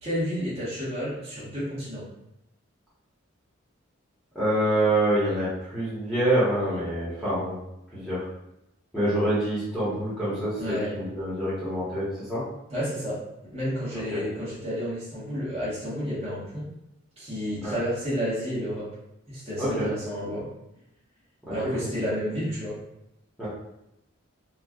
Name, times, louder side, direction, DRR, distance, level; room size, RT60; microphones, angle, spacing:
voice 1, 0.0-2.0 10.6-10.9 12.7-13.2 13.5-16.6 17.2-18.9 19.3-20.5 21.5-22.8, equal, 30° right, -10 dB, 1.3 m, -31 dB
voice 2, 4.3-7.6 7.9-8.2 8.9-12.4 13.9-14.2 17.6-17.8 19.6-19.9 21.5-21.6 21.8-21.9 23.4-23.5, right 1 dB, ahead, -12 dB, 1.1 m, -26 dB
4.5 x 2.3 x 2.4 m, 0.86 s
head